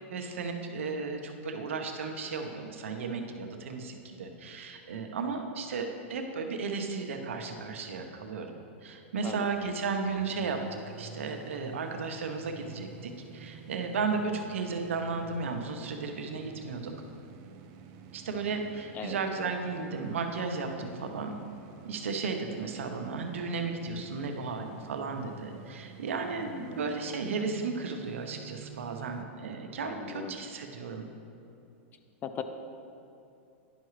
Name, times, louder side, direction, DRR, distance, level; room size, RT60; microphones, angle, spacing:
voice 1, 0.1-8.5 8.8-10.6 11.0-16.9 18.1-21.3 21.8-31.0, right 4 dB, 90° right, 4 dB, 0.8 m, -34 dB
sound 1, 9.5-29.2, right 7 dB, 45° right, 0.6 m, -50 dB
voice 2, 26.4-26.9 29.8-30.4 32.2-32.4, left 7 dB, 25° left, 8 dB, 0.5 m, -39 dB
10.5 x 5.7 x 3.1 m, 2.8 s
hypercardioid pair, 130°, 7 cm